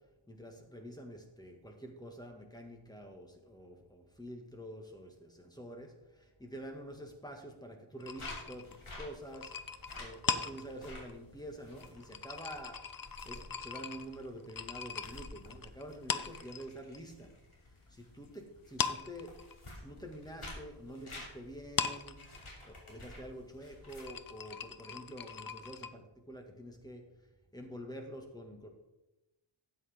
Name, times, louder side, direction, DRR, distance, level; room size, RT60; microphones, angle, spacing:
voice 1, 0.3-12.8 13.2-17.3 17.7-19.3 19.8-22.2 22.6-27.0 27.5-28.7, equal, 10° left, 2 dB, 2.0 m, -47 dB
sound 1, 8.0-17.0 17.3-18.3 18.6-25.9, left 6 dB, 45° left, 0.6 m, -40 dB
sound 2, 8.2-24.5, left 1 dB, 85° left, 3.1 m, -52 dB
12.5 x 8.7 x 3.7 m, 0.97 s
wide cardioid pair, 60°, 49 cm